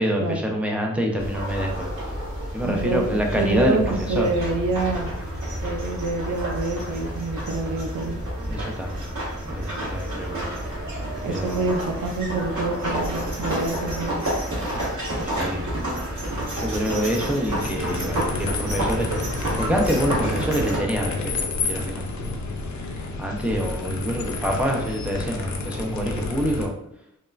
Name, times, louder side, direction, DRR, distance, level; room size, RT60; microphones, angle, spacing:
voice 1, 0.0-1.9 2.5-4.3 8.5-9.1 9.4-10.5 11.3-11.7 15.2-15.6 16.5-19.1 19.6-22.0 23.2-26.7, equal, 5° right, 0 dB, 0.4 m, -26 dB
sound 1, 1.2-20.8, right 1 dB, 65° right, 1.2 m, -29 dB
voice 2, 2.6-3.0 3.4-5.1 5.6-8.1 11.2-14.1, right 3 dB, 90° right, 4 dB, 0.5 m, -26 dB
sound 2, 17.6-26.7, left 3 dB, 65° left, 0.4 m, -30 dB
3.0 x 2.1 x 2.3 m, 0.74 s
wide cardioid pair, 140°, 31 cm